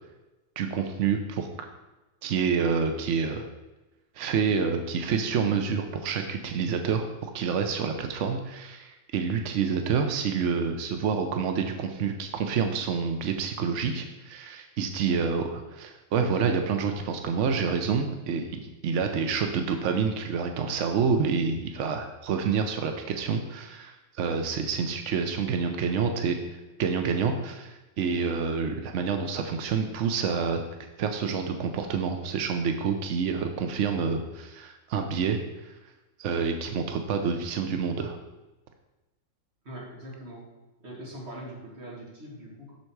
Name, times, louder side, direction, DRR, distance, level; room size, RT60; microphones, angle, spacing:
voice 1, 0.6-1.5 2.2-3.5 4.1-7.1 7.3-30.6 31.0-35.4 35.6-35.7 36.2-38.2, right 6 dB, 70° right, 5 dB, 0.7 m, -28 dB
voice 2, 39.6-40.4 40.8-42.8, right 1 dB, 35° right, -4 dB, 2.6 m, -42 dB
7.2 x 6.6 x 4.6 m, 1.1 s
omnidirectional pair, 2.0 m